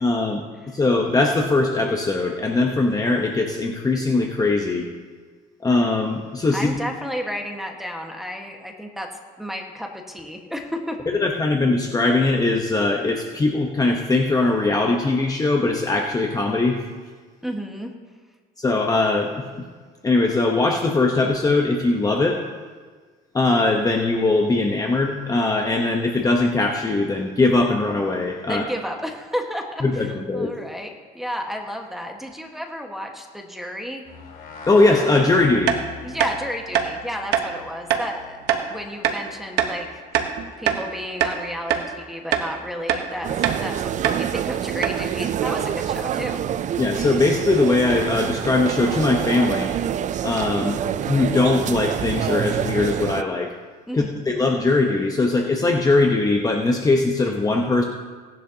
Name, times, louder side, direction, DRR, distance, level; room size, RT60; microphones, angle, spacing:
voice 1, 0.0-4.8 5.6-6.7 11.1-16.8 18.6-19.5 20.0-22.4 23.3-28.6 29.8-30.5 34.7-35.8 46.8-49.7 50.2-53.5 53.9-57.8, left 2 dB, 20° left, 1 dB, 1.0 m, -20 dB
voice 2, 6.5-9.1 9.4-11.0 17.4-17.9 28.5-30.1 30.3-34.1 36.0-40.0 40.6-43.3 43.6-46.4 53.9-54.2, equal, ahead, 2 dB, 1.5 m, -32 dB
sound 1, 34.1-38.7, left 4 dB, 60° left, 2.6 m, -41 dB
sound 2, 35.7-35.8 36.2-36.3 36.7-36.9 37.3-37.5 37.9-38.1 38.5-38.6 39.0-39.2 39.6-39.7 40.1-40.9 41.2-41.4 41.7-41.9 42.3-42.5 42.9-43.0 43.4-43.6 44.0-44.2 44.5-44.6 44.8-45.0, right 9 dB, 85° right, 1.1 m, -22 dB
sound 3, 43.2-53.2, right 9 dB, 45° right, 0.5 m, -26 dB
18.0 x 10.5 x 2.9 m, 1.5 s
cardioid pair, 110°, 17 cm